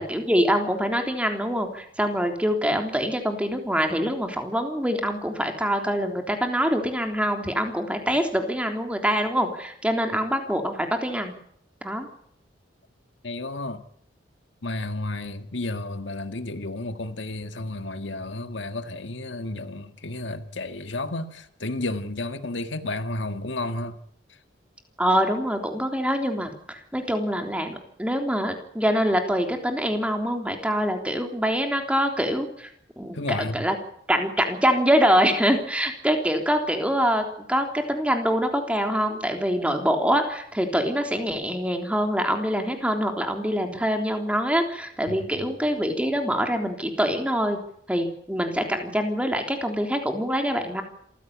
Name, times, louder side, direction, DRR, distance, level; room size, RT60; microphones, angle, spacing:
voice 1, 0.0-11.3 11.8-12.1 25.0-32.7 33.0-33.7 34.1-47.6 47.9-50.8, equal, 5° right, 3.5 m, -25 dB
voice 2, 13.2-13.8 14.6-24.0 33.1-33.7 45.1-45.5, left 2 dB, 75° left, 1.8 m, -32 dB
26.5 x 15.5 x 8.4 m
head